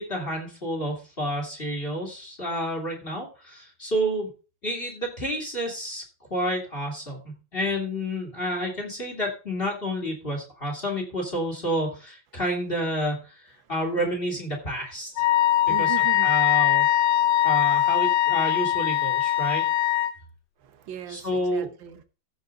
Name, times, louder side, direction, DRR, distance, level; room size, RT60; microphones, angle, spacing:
voice 1, 0.0-4.3 4.6-6.0 6.3-13.4 13.7-15.2 15.7-15.9 16.2-16.9 17.4-19.6 21.1-21.7, equal, 30° left, 2.9 m, -29 dB
Wind instrument woodwind instrument, 15.2-20.1, left 13 dB, 65° left, 1.2 m, -21 dB
voice 2, 15.7-16.3 20.6-22.0, right 11 dB, 75° right, 1.8 m, -37 dB
15.5 x 5.2 x 4.0 m
omnidirectional pair, 2.1 m